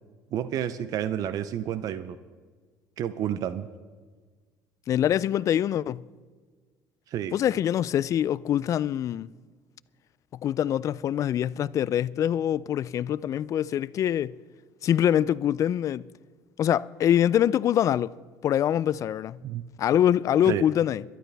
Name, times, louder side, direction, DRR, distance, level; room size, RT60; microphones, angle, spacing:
voice 1, 0.3-2.2 3.0-3.7 7.1-7.4 19.4-19.6 20.5-20.6, right 10 dB, 55° right, 0.6 m, -30 dB
voice 2, 4.9-6.1 7.3-9.3 10.3-14.4 14.8-16.0 16.6-18.1 18.4-19.4 19.8-21.0, left 10 dB, 45° left, 0.3 m, -24 dB
21.5 x 12.0 x 3.4 m
cardioid pair, 110°, 7 cm